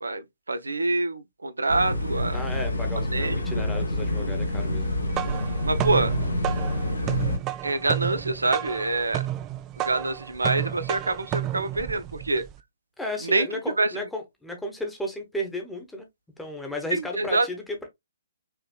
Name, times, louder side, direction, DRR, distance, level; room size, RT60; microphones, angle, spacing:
voice 1, 0.0-2.4 3.1-3.4 5.6-6.1 7.6-9.2 9.8-12.4 13.2-13.5 13.8-13.9 16.9-17.5, right 2 dB, 75° right, 0.5 m, -26 dB
sound 1, 1.7-7.4, left 1 dB, 70° left, 1.1 m, -27 dB
voice 2, 2.3-4.9 13.0-16.1 16.4-17.9, left 1 dB, 5° left, 1.0 m, -33 dB
sound 2, 4.8-12.6, right 13 dB, 20° right, 0.3 m, -31 dB
5.3 x 2.9 x 2.2 m
figure-of-eight pair, 130°, 0 cm